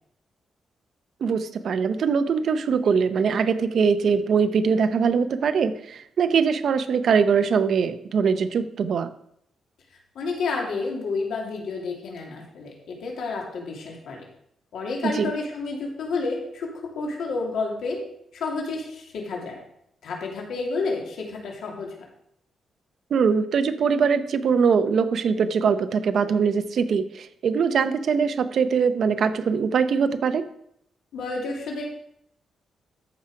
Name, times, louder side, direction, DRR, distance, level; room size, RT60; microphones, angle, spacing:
voice 1, 1.2-9.1 15.0-15.3 23.1-30.4, right 6 dB, 60° right, 10 dB, 0.7 m, -22 dB
voice 2, 10.1-14.2 14.7-18.0 18.3-19.6 20.0-21.9 31.1-31.9, left 3 dB, 85° left, 0 dB, 2.8 m, -30 dB
13.5 x 5.9 x 4.9 m, 0.73 s
wide cardioid pair, 140°, 0 cm